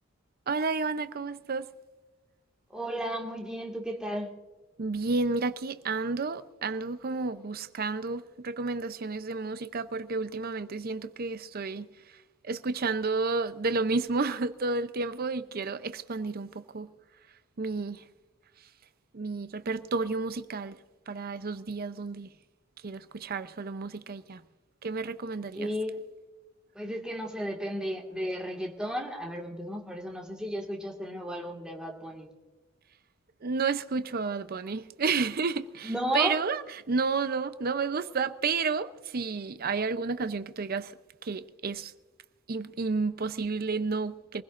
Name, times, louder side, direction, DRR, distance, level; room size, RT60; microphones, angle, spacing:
voice 1, 0.5-1.7 4.8-11.9 12.5-16.9 17.6-18.0 19.1-20.8 21.1-22.3 22.8-24.4 24.8-25.7 33.4-36.6 36.9-41.0 41.2-41.9 42.5-44.4, right 4 dB, 50° right, 0.6 m, -31 dB
voice 2, 2.7-4.3 25.5-26.0 26.7-32.3 35.8-36.4, equal, 5° right, 1.8 m, -34 dB
23.5 x 16.0 x 2.5 m
head